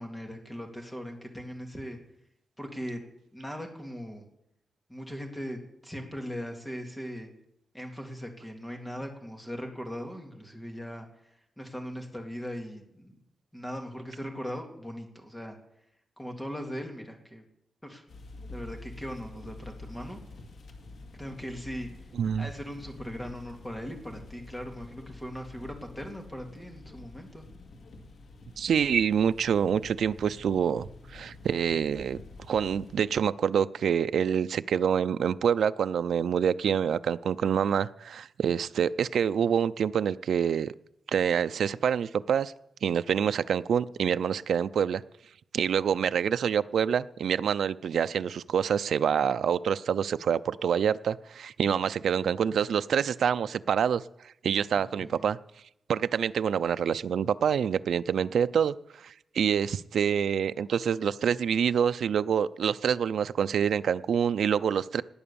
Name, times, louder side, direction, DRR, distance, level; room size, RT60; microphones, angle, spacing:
voice 1, 0.0-2.0 2.6-3.0 3.3-4.3 4.9-7.3 7.7-13.1 13.5-15.6 16.2-17.4 17.8-18.0 18.5-20.2 21.1-21.9 22.4-27.5 54.9-55.3, equal, 10° left, 3 dB, 2.3 m, -39 dB
sound 1, 18.1-33.0, left 2 dB, 85° left, 2.0 m, -48 dB
voice 2, 22.2-22.5 28.6-32.2 32.5-40.7 41.1-42.5 42.8-45.0 45.5-54.0 54.4-55.4 55.9-65.0, right 8 dB, 80° right, 13 dB, 0.4 m, -26 dB
18.5 x 8.7 x 6.9 m, 0.78 s
wide cardioid pair, 170°, 0 cm